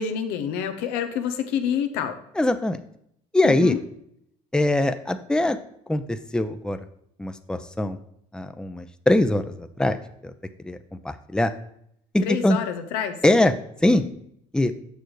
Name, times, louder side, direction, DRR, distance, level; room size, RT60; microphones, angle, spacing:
voice 1, 0.0-2.2 3.4-3.8 12.2-13.2, left 8 dB, 80° left, 7 dB, 0.9 m, -27 dB
voice 2, 2.4-2.8 3.3-3.8 4.5-5.6 5.9-6.8 7.2-8.0 8.3-10.0 10.2-10.3 10.6-10.8 11.0-11.5 12.1-12.6 13.2-13.5 13.8-14.0 14.5-14.7, left 1 dB, 5° left, 9 dB, 0.7 m, -22 dB
7.0 x 6.2 x 4.8 m, 0.70 s
supercardioid pair, 75°, 16 cm